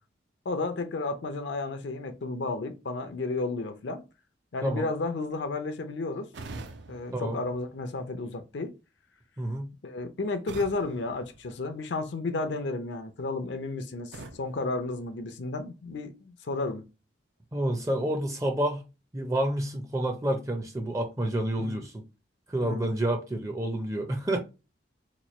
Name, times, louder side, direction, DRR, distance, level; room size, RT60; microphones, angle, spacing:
voice 1, 0.5-4.0 4.5-6.3 6.9-8.7 9.8-16.8 21.6-21.8 22.6-22.9, left 3 dB, 70° left, 0.5 m, -32 dB
sound 1, 6.3-8.3 10.5-12.2 14.1-15.7, right 3 dB, 75° right, 0.5 m, -46 dB
voice 2, 9.4-9.7 17.5-18.8 19.1-22.0 22.5-24.4, right 1 dB, 15° right, 0.5 m, -29 dB
3.0 x 2.3 x 4.1 m
head